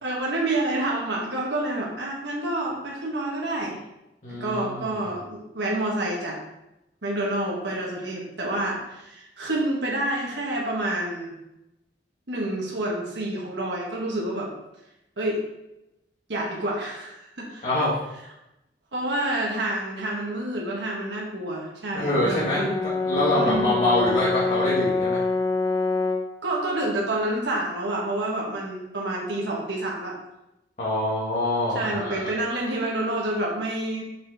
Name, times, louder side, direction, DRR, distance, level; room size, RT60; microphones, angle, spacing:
voice 1, 0.0-3.8 4.3-6.4 7.0-11.4 12.3-14.5 15.2-15.4 16.3-17.6 18.9-22.8 23.3-23.7 26.4-30.2 31.7-34.0, right 1 dB, 75° right, -3 dB, 1.4 m, -28 dB
voice 2, 4.2-5.0 17.6-18.0 21.9-22.6 23.0-25.2 30.8-32.1, left 1 dB, 45° left, -9 dB, 1.9 m, -25 dB
Brass instrument, 22.0-26.3, left 3 dB, 20° left, 0.6 m, -26 dB
5.7 x 5.5 x 4.0 m, 0.90 s
head